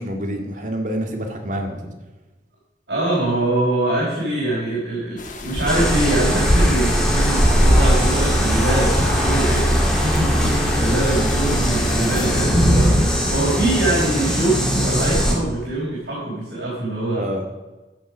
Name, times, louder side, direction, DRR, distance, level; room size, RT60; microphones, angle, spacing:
voice 1, 0.0-1.8 10.0-10.8 17.1-17.4, equal, 45° right, 3 dB, 2.1 m, -27 dB
voice 2, 2.9-9.8 10.8-17.3, right 2 dB, 65° right, -7 dB, 5.0 m, -23 dB
sound 1, 5.2-12.5, left 1 dB, 45° left, 1.6 m, -30 dB
sound 2, 5.7-15.3, equal, 5° left, 2.6 m, -19 dB
14.5 x 7.5 x 6.4 m, 1.1 s
head